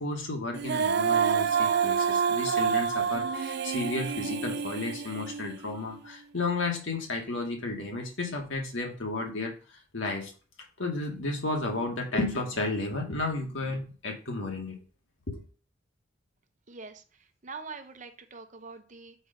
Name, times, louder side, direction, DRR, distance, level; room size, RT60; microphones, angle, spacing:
voice 1, 0.0-10.3 10.8-14.8 15.3-15.4, left 2 dB, 80° left, 2 dB, 1.8 m, -33 dB
Female singing, 0.6-5.8, right 7 dB, 55° right, 0.4 m, -27 dB
voice 2, 16.7-17.0 17.4-19.1, right 4 dB, 40° right, 8 dB, 0.8 m, -43 dB
5.2 x 5.2 x 5.1 m, 0.38 s
head